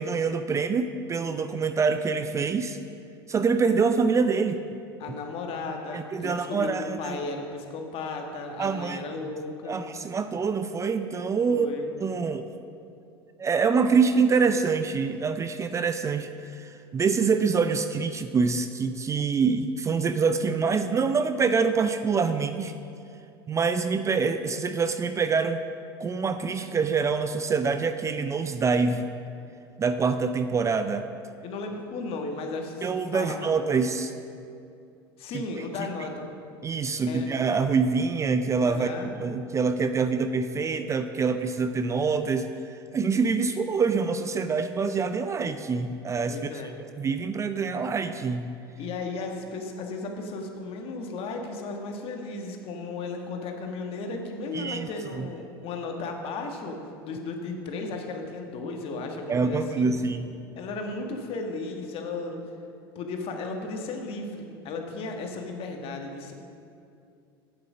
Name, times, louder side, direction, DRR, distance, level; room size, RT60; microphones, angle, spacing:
voice 1, 0.0-2.8 3.3-4.6 5.9-7.2 8.6-9.0 9.7-11.7 12.0-12.5 13.4-22.7 23.5-25.6 26.0-29.0 29.8-31.1 32.8-34.1 35.3-35.4 36.6-38.9 39.2-46.5 47.0-48.5 54.5-54.9 55.2-55.3 59.3-60.4, right 5 dB, 25° right, 9 dB, 0.5 m, -25 dB
voice 2, 5.0-9.8 11.5-11.9 31.4-33.8 35.2-36.3 37.0-37.3 38.7-39.1 46.3-46.8 48.8-59.9 60.6-62.4 62.9-66.3, left 3 dB, 50° left, 3 dB, 1.4 m, -35 dB
8.0 x 7.7 x 6.2 m, 2.5 s
hypercardioid pair, 85°, 13 cm